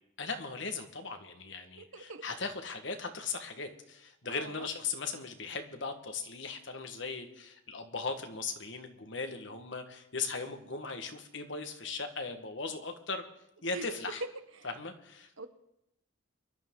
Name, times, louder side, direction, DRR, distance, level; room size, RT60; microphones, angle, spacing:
voice 1, 0.2-13.2 13.6-14.2 14.6-15.3, left 4 dB, 60° left, 7 dB, 1.6 m, -38 dB
voice 2, 1.8-2.2 4.3-4.7 13.7-13.8 14.6-14.7 15.4-15.5, right 4 dB, 75° right, 10 dB, 1.1 m, -43 dB
24.0 x 11.5 x 3.9 m, 0.80 s
head